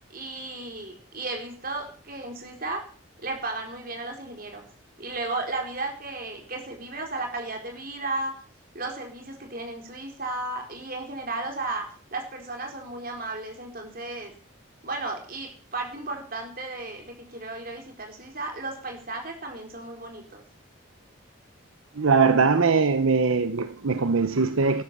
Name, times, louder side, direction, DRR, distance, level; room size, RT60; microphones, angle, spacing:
voice 1, 0.1-2.9 3.2-4.6 5.0-8.3 8.7-14.3 14.8-20.4, right 2 dB, 45° right, 4.2 m, -34 dB
voice 2, 22.0-24.8, right 4 dB, 75° right, 0.8 m, -21 dB
12.5 x 12.0 x 6.7 m
head